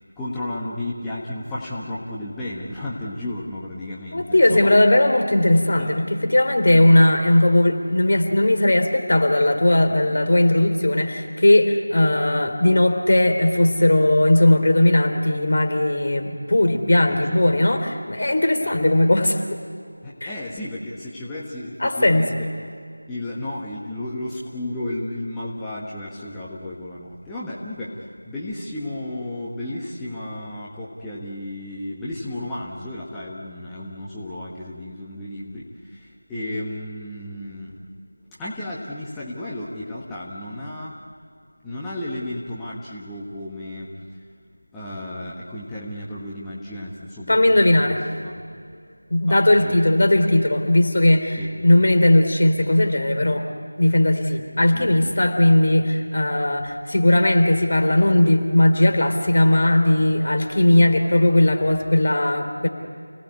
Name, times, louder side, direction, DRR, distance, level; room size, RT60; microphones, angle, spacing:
voice 1, 0.2-4.7 5.8-5.9 16.9-17.7 18.6-18.7 20.0-22.5 23.1-27.9 28.2-37.7 38.4-40.9 41.6-43.9 44.7-48.0 48.2-48.4 49.3-49.9 51.4-51.5 54.7-54.9, left 1 dB, 5° left, -8 dB, 1.5 m, -33 dB
voice 2, 4.1-19.5 20.2-20.3 21.8-22.3 47.3-48.0 49.1-53.4 53.8-62.7, left 1 dB, 50° left, 5 dB, 3.6 m, -18 dB
29.0 x 18.5 x 9.7 m, 2.3 s
figure-of-eight pair, 170°, 0 cm